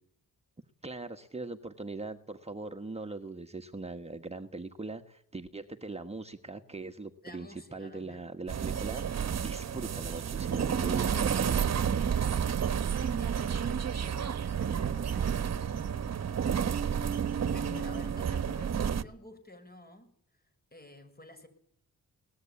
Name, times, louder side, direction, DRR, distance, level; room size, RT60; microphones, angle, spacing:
voice 1, 0.8-11.7, right 3 dB, 20° right, 5 dB, 1.5 m, -41 dB
voice 2, 7.2-8.3 12.9-16.6 17.5-20.1 20.7-21.5, left 2 dB, 30° left, 9 dB, 6.3 m, -52 dB
sound 1, 8.5-19.0, right 7 dB, 50° right, 1.4 m, -30 dB
23.0 x 19.5 x 8.6 m, 0.68 s
cardioid pair, 90°, 33 cm